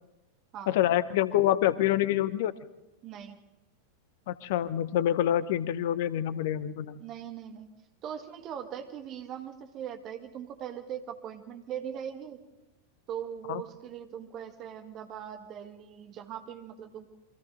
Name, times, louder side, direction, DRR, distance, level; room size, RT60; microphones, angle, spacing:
voice 1, 0.7-2.5 4.3-7.0 13.5-13.6, left 12 dB, 50° left, 17 dB, 0.8 m, -26 dB
voice 2, 3.0-3.4 7.0-7.7 8.0-12.4 13.1-17.1, right 9 dB, 35° right, 7 dB, 1.8 m, -40 dB
28.5 x 24.0 x 3.8 m, 1.0 s
figure-of-eight pair, 90°, 0 cm